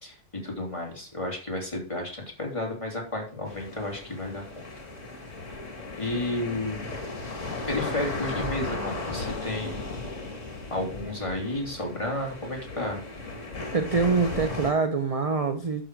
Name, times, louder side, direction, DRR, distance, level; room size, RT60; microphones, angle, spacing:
voice 1, 0.0-4.7 6.0-6.8 7.7-9.9 10.7-13.0, left 1 dB, 20° left, 0 dB, 2.9 m, -32 dB
sound 1, 3.5-14.7, left 2 dB, 50° left, 2.5 m, -35 dB
voice 2, 13.7-15.9, right 4 dB, 30° right, 7 dB, 0.7 m, -25 dB
11.5 x 6.5 x 4.7 m, 0.39 s
omnidirectional pair, 1.6 m